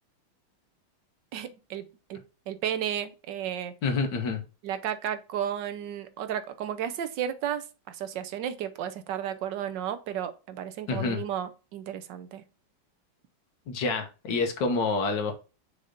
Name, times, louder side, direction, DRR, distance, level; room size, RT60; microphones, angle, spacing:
voice 1, 1.3-2.2 2.5-3.7 4.6-12.4, right 9 dB, 65° right, 1.2 m, -33 dB
voice 2, 3.8-4.4 10.9-11.2 13.7-15.3, left 4 dB, 60° left, 1.7 m, -27 dB
6.6 x 3.0 x 5.0 m
omnidirectional pair, 2.3 m